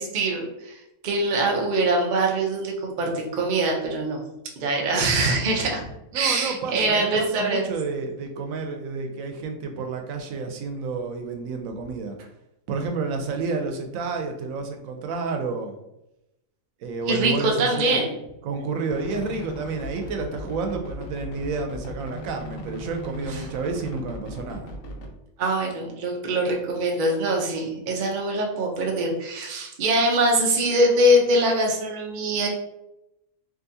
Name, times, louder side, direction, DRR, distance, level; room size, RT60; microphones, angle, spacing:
voice 1, 0.0-4.2 4.6-5.8 6.1-7.6 17.1-18.1 23.3-23.4 25.4-32.5, right 1 dB, 50° right, 0 dB, 0.6 m, -23 dB
voice 2, 6.1-12.2 12.7-15.7 16.8-18.0 18.4-24.7, right 4 dB, 90° right, 4 dB, 1.0 m, -30 dB
sound 1, 18.9-25.1, left 1 dB, 85° left, 1.0 m, -38 dB
3.7 x 2.6 x 2.6 m, 0.87 s
omnidirectional pair, 1.4 m